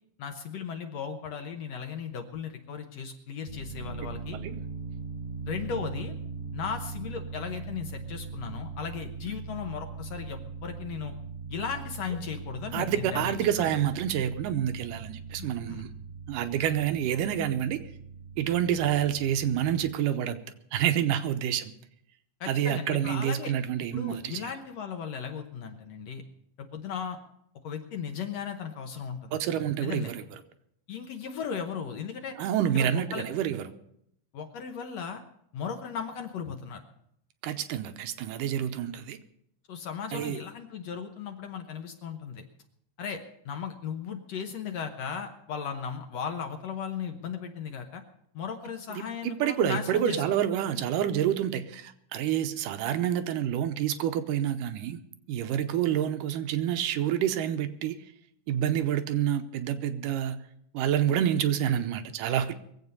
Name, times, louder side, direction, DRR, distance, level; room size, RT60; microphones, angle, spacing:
voice 1, 0.2-4.4 5.5-6.1 6.5-11.1 11.5-13.7 15.4-15.8 22.4-23.5 23.9-26.2 26.6-27.2 27.6-29.4 29.8-30.1 30.9-32.4 32.7-33.3 34.3-35.2 35.5-36.8 39.7-42.4 43.0-48.0 48.3-50.2, left 7 dB, 65° left, 5 dB, 1.9 m, -36 dB
sound 1, 3.5-19.9, right 4 dB, 65° right, 9.1 m, -40 dB
voice 2, 12.7-15.9 16.3-17.8 18.4-20.4 20.7-21.7 22.5-24.5 29.3-30.2 32.4-33.7 37.4-39.2 40.1-40.4 48.9-55.0 55.3-58.0 58.5-60.4 60.7-62.5, right 10 dB, 85° right, 10 dB, 2.3 m, -28 dB
22.5 x 8.1 x 5.4 m, 0.74 s
omnidirectional pair, 3.8 m